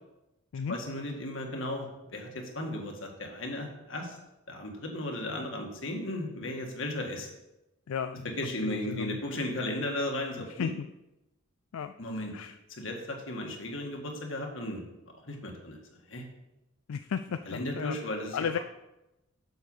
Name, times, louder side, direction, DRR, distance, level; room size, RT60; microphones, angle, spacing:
voice 1, 0.7-4.2 4.5-7.3 8.4-10.7 12.0-12.3 12.7-14.8 15.2-16.2 17.5-18.4, left 1 dB, 65° left, 2 dB, 1.7 m, -35 dB
voice 2, 7.9-9.2 10.5-10.7 11.7-11.9 12.3-12.6 16.9-18.0 18.3-18.6, left 7 dB, 90° left, 9 dB, 0.4 m, -34 dB
8.0 x 6.7 x 5.5 m, 0.95 s
head